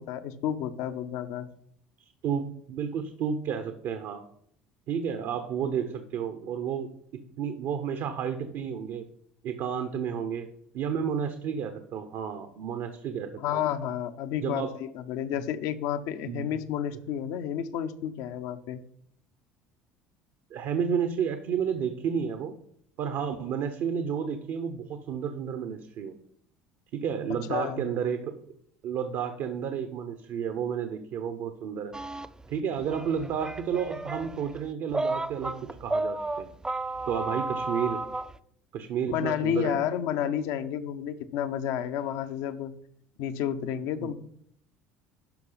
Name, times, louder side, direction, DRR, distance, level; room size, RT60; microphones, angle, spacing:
voice 1, 0.0-1.5 13.4-18.8 27.5-27.8 39.1-42.7 43.2-44.1, left 9 dB, 65° left, 10 dB, 0.8 m, -31 dB
voice 2, 2.0-4.2 4.9-6.9 7.4-9.1 9.4-10.5 10.7-13.6 14.4-14.7 16.3-16.5 20.5-22.6 23.0-26.1 26.9-28.5 28.8-32.0 32.5-35.5 35.8-36.5 37.1-38.0 38.7-39.8 44.0-44.1, right 7 dB, 60° right, 8 dB, 0.9 m, -31 dB
sound 1, 31.9-38.4, right 2 dB, 10° right, 0.5 m, -33 dB
12.0 x 5.5 x 3.9 m, 0.68 s
hypercardioid pair, 65°, 6 cm